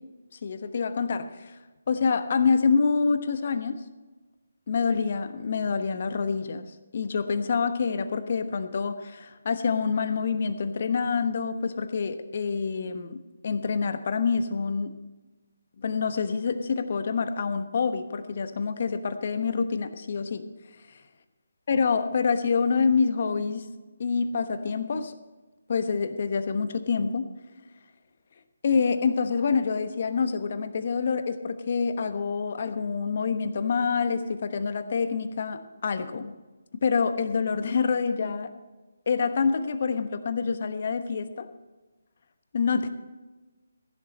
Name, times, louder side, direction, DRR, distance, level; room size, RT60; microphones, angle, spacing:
voice 1, 0.4-1.5 1.9-3.9 4.7-14.9 15.8-20.5 20.9-21.0 21.7-23.7 24.0-25.2 25.7-27.3 28.6-36.3 36.8-38.5 39.1-41.5 42.5-42.9, left 5 dB, 50° left, 9 dB, 1.1 m, -27 dB
15.5 x 11.0 x 4.3 m, 1.2 s
figure-of-eight pair, 150°, 0 cm